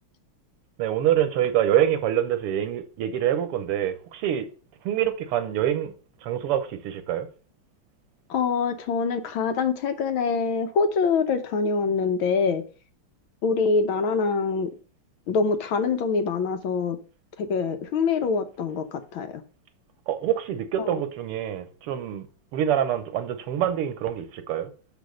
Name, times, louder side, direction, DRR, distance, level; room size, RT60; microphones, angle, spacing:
voice 1, 0.8-4.5 4.9-5.9 6.2-7.3 20.1-22.2 22.5-24.7, right 10 dB, 85° right, 1.9 m, -25 dB
voice 2, 8.3-12.6 13.4-14.7 15.3-17.0 17.4-19.4 20.8-20.9, left 5 dB, 70° left, 1.6 m, -24 dB
6.3 x 5.3 x 6.4 m
omnidirectional pair, 2.4 m